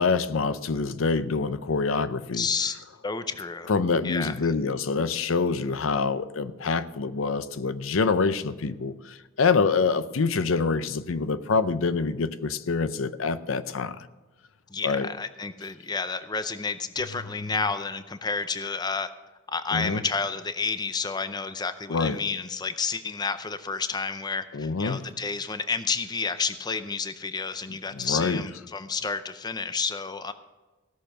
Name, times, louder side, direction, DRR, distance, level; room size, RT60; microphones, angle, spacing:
voice 1, 0.0-2.4 3.7-14.0 14.8-15.1 19.7-20.0 21.9-22.2 24.5-25.0 28.0-28.4, left 4 dB, 70° left, 14 dB, 0.6 m, -26 dB
voice 2, 2.3-2.7 3.0-3.7 4.0-4.5 14.7-19.1 19.5-30.3, left 4 dB, 20° left, 11 dB, 0.5 m, -30 dB
16.5 x 6.8 x 6.3 m, 1.2 s
head